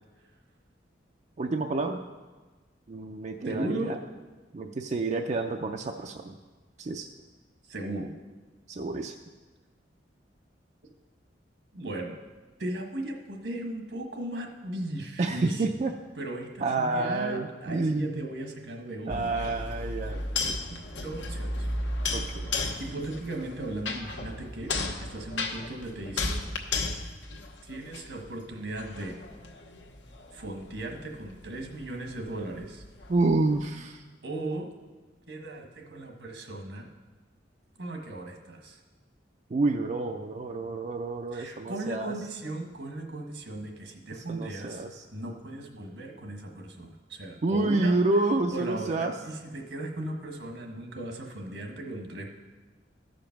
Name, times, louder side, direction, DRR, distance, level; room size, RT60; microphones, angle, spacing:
voice 1, 1.4-2.0 2.9-4.0 4.5-6.4 6.8-7.1 8.7-9.1 15.2-16.0 16.6-18.2 19.1-20.8 22.1-22.5 33.1-34.0 39.5-42.1 44.1-45.1 47.4-49.1, right 2 dB, 40° right, 4 dB, 0.4 m, -29 dB
voice 2, 3.4-4.0 7.7-8.1 11.7-12.2 12.6-15.8 16.2-19.4 21.0-21.7 22.8-24.7 25.0-26.4 27.6-29.2 30.3-32.8 34.2-34.7 35.3-36.9 37.8-38.8 41.3-44.8 45.1-47.9 48.5-52.3, right 1 dB, 80° right, 2 dB, 1.4 m, -37 dB
sound 1, 19.1-28.3 28.8-33.6, left 2 dB, 80° left, 1.0 m, -34 dB
13.5 x 5.2 x 5.8 m, 1.3 s
head